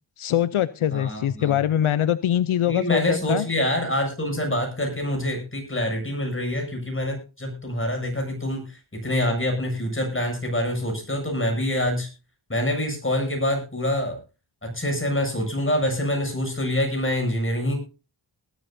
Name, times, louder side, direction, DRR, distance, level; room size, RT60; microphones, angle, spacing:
voice 1, 0.2-3.5, left 11 dB, 80° left, 16 dB, 0.6 m, -23 dB
voice 2, 0.9-1.6 2.7-12.1 12.5-14.2 14.6-17.8, left 1 dB, 25° left, 4 dB, 7.5 m, -26 dB
20.0 x 12.5 x 2.7 m, 0.32 s
cardioid pair, 60°, 48 cm